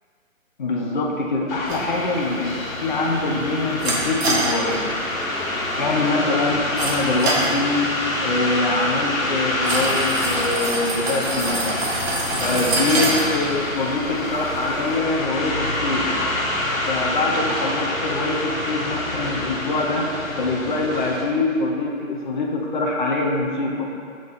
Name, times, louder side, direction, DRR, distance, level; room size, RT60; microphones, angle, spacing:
voice 1, 0.6-4.9 5.8-7.9 8.2-11.8 12.4-16.2 16.9-23.9, left 2 dB, 35° left, -1 dB, 0.8 m, -24 dB
sound 1, 1.5-21.2, left 1 dB, 75° left, 1.5 m, -27 dB
sound 2, 1.7-15.0, right 2 dB, 50° right, 1.3 m, -28 dB
5.7 x 3.8 x 5.6 m, 2.3 s
hypercardioid pair, 160°, 41 cm